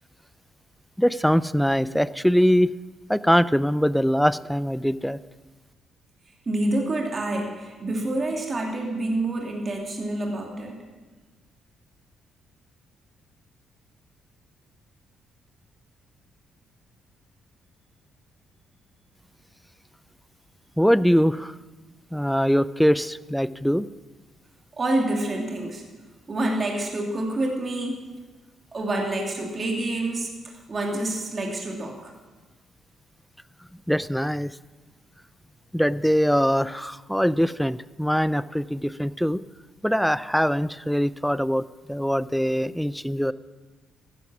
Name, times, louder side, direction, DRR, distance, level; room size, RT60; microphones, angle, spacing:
voice 1, 1.0-2.7 3.1-5.2 20.8-21.5 22.1-23.9 33.9-34.5 35.7-39.4 39.8-43.3, equal, ahead, 17 dB, 0.4 m, -22 dB
voice 2, 6.5-10.8 24.8-25.8 26.3-28.1 28.7-32.1, right 1 dB, 35° right, 0 dB, 2.5 m, -27 dB
14.0 x 11.0 x 6.1 m, 1.3 s
cardioid pair, 90°, 0 cm